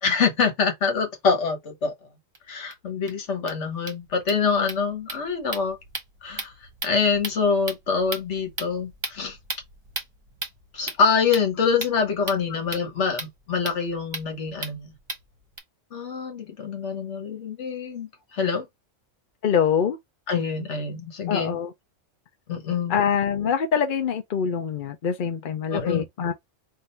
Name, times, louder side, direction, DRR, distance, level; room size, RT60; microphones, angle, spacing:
voice 1, 0.0-1.9 2.5-5.8 6.2-6.5 6.8-9.4 10.7-14.9 15.9-18.7 20.3-21.6 22.5-23.0 25.7-26.1, left 5 dB, 65° left, 1.5 m, -25 dB
sound 1, 2.3-2.4 2.7-2.8 3.1-3.2 3.4-15.6, right 2 dB, 25° right, 1.1 m, -37 dB
voice 2, 19.4-20.0 21.3-21.7 22.9-26.3, left 7 dB, 50° left, 0.7 m, -24 dB
3.7 x 2.7 x 4.3 m
omnidirectional pair, 1.3 m